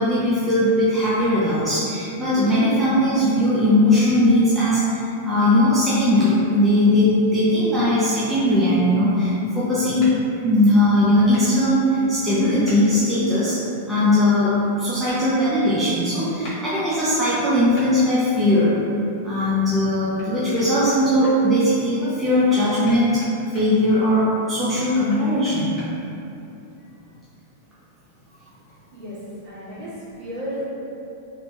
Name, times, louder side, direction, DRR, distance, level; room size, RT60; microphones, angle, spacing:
voice 1, 0.0-10.1 10.4-13.6 13.9-18.8 19.2-23.2 23.5-25.8, left 1 dB, 5° right, -11 dB, 0.3 m, -19 dB
sound 1, 8.5-8.6 10.0-10.1 11.3-11.5 12.6-12.8 15.1-15.2 16.4-16.6 17.7-17.9 20.2-20.3 20.6-21.3 22.5-23.7 24.7-25.9, left 1 dB, 35° left, 0.8 m, -41 dB
voice 2, 29.4-30.6, equal, 50° right, -12 dB, 1.4 m, -33 dB
2.8 x 2.5 x 2.3 m, 2.7 s
supercardioid pair, 170°, 0 cm